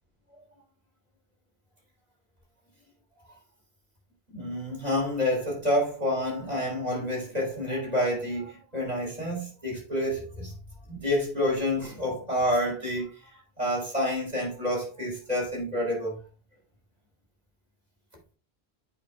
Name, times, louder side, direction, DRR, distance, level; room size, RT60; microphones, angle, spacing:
voice 1, 4.3-10.5 10.9-16.2, left 1 dB, 40° right, 3.7 m, -28 dB
8.2 x 5.3 x 3.3 m
omnidirectional pair, 1.1 m